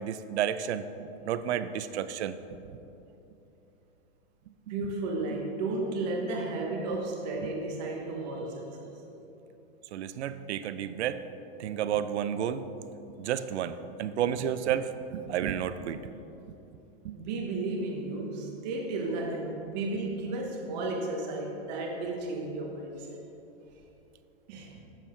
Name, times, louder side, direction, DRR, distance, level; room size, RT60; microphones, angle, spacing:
voice 1, 0.0-2.4 7.4-7.5 9.9-11.2 11.6-12.6 13.2-16.0 17.0-17.2, right 9 dB, 90° right, 12 dB, 0.6 m, -31 dB
voice 2, 4.7-9.0 17.1-23.2 24.5-24.7, right 2 dB, 40° right, 1 dB, 1.1 m, -33 dB
7.4 x 7.2 x 4.5 m, 2.9 s
supercardioid pair, 165°, 33 cm